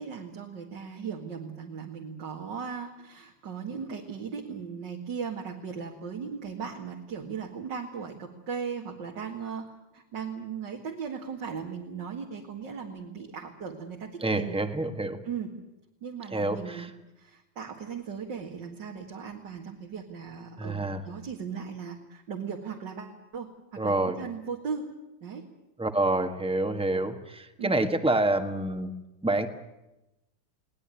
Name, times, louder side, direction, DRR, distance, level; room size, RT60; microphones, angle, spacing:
voice 1, 0.0-14.5 15.2-15.6 16.0-24.9 25.2-25.5 27.6-27.8, right 6 dB, 60° right, 1 dB, 2.6 m, -37 dB
voice 2, 14.2-15.2 16.3-16.9 20.6-21.0 23.8-24.2 25.8-28.9 29.2-29.5, right 2 dB, 5° right, 7 dB, 1.3 m, -27 dB
21.0 x 19.0 x 9.0 m, 0.94 s
omnidirectional pair, 2.2 m